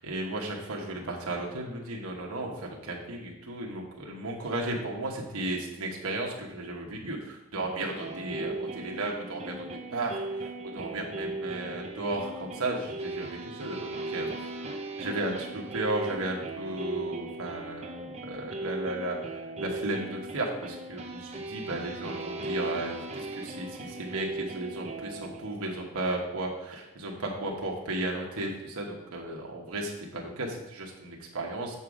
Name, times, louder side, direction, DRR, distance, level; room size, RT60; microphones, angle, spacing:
voice 1, 0.0-14.3 15.0-31.8, right 2 dB, 80° right, -1 dB, 1.2 m, -34 dB
sound 1, 8.0-25.8, right 2 dB, 30° right, 0.7 m, -38 dB
7.3 x 5.6 x 4.9 m, 1.1 s
head